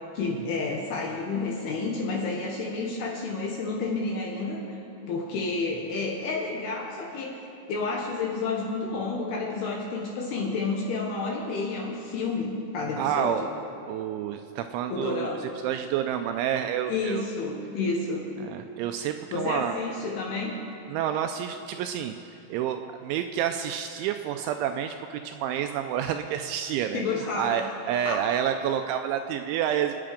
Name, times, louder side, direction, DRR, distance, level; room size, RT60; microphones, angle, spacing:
voice 1, 0.1-4.8 5.1-7.4 7.7-13.5 14.9-15.4 16.9-18.3 19.3-20.6 26.9-27.7 28.1-28.2, left 3 dB, 70° left, 0 dB, 2.6 m, -30 dB
voice 2, 13.0-13.4 13.9-15.3 15.6-17.3 18.4-19.8 20.9-22.1 22.5-29.9, right 10 dB, 85° right, 7 dB, 2.7 m, -29 dB
26.0 x 9.7 x 5.1 m, 2.7 s
omnidirectional pair, 5.8 m